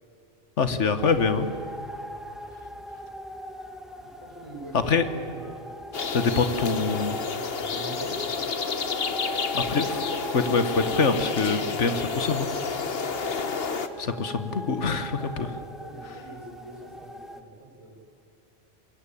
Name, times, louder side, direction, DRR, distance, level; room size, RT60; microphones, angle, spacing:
voice 1, 0.6-1.5 4.8-5.0 6.1-7.2 9.5-10.0 10.3-12.5 13.4-13.5 14.0-15.5, left 4 dB, 80° left, 10 dB, 1.7 m, -25 dB
sound 1, 1.0-17.4, equal, ahead, 1.5 m, -40 dB
voice 2, 4.0-5.7 7.7-8.2 15.2-18.0, right 1 dB, 25° right, -1 dB, 6.7 m, -44 dB
sound 2, 5.9-13.9, left 5 dB, 55° left, 1.4 m, -30 dB
26.5 x 22.5 x 8.6 m, 2.5 s
omnidirectional pair, 1.2 m